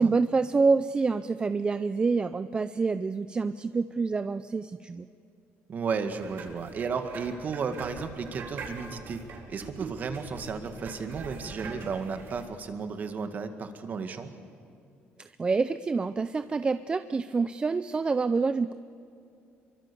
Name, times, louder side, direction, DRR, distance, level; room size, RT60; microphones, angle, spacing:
voice 1, 0.0-5.1 15.2-18.7, right 4 dB, 20° right, 12 dB, 0.5 m, -27 dB
voice 2, 5.7-9.2 9.5-14.3, right 5 dB, 40° right, 8 dB, 2.0 m, -33 dB
sound 1, 5.9-12.4, right 4 dB, 60° right, 4.3 m, -43 dB
26.5 x 24.0 x 7.1 m, 2.5 s
cardioid pair, 135°, 4 cm